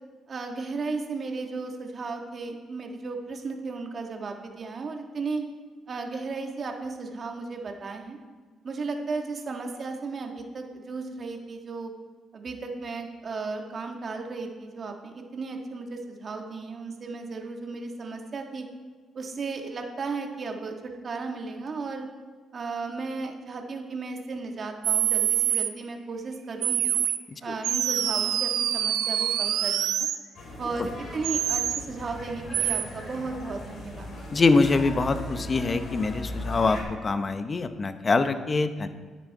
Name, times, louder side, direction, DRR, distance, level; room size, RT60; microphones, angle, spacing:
voice 1, 0.3-5.4 5.9-8.2 8.6-11.9 12.3-18.7 19.1-22.1 22.5-26.9 27.4-30.1 30.6-34.1, right 4 dB, 45° right, 3 dB, 1.5 m, -35 dB
sound 1, 24.8-25.7 26.6-27.2 27.6-30.2 31.2-31.8 32.5-32.8, right 10 dB, 80° right, 0.6 m, -25 dB
sound 2, 30.3-36.8, left 1 dB, 60° left, 2.8 m, -38 dB
voice 2, 34.3-38.9, left 3 dB, 35° left, 10 dB, 0.7 m, -24 dB
10.5 x 8.3 x 4.7 m, 1.5 s
cardioid pair, 90°, 0 cm